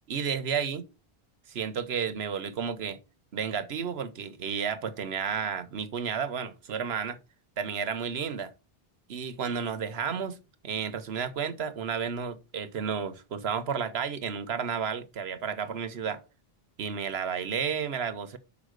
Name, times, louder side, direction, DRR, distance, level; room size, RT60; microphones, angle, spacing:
voice 1, 0.1-0.9 1.5-3.0 3.3-7.2 7.6-8.5 9.1-10.4 10.6-16.2 16.8-18.4, right 6 dB, 90° right, 1.1 m, -32 dB
5.6 x 5.1 x 6.5 m
omnidirectional pair, 1.0 m